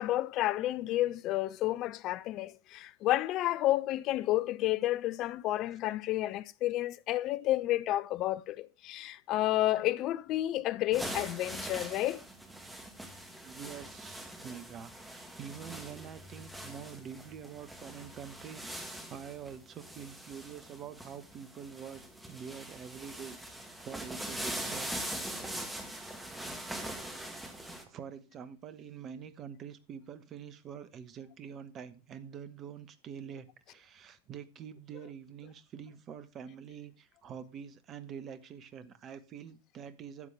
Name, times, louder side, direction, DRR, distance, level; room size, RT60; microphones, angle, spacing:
voice 1, 0.0-12.2, left 15 dB, 35° left, 0.4 m, -31 dB
sound 1, 10.9-27.8, right 1 dB, 5° right, 1.7 m, -42 dB
voice 2, 13.4-22.0 22.3-23.4 23.8-24.9 27.6-40.3, right 8 dB, 30° right, 1.0 m, -46 dB
12.0 x 8.0 x 3.5 m
figure-of-eight pair, 90°, 0 cm